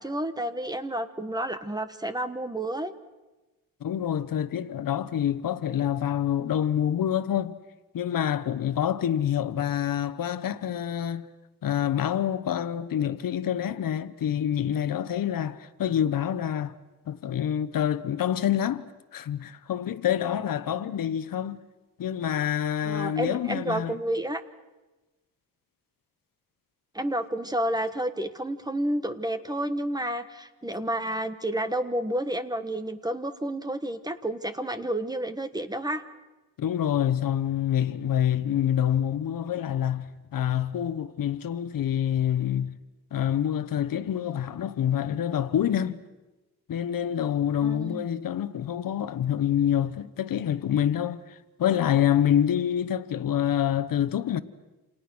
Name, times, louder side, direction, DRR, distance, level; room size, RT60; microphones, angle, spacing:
voice 1, 0.0-2.9 22.8-24.4 26.9-36.0 47.6-48.1, right 1 dB, 10° right, 1.2 m, -30 dB
voice 2, 3.8-7.6 7.9-11.3 11.6-16.7 17.1-18.8 19.1-21.6 22.0-23.9 36.6-42.8 43.1-46.0 46.7-54.4, left 10 dB, 65° left, 1.1 m, -27 dB
28.5 x 28.0 x 6.2 m
wide cardioid pair, 145°, 36 cm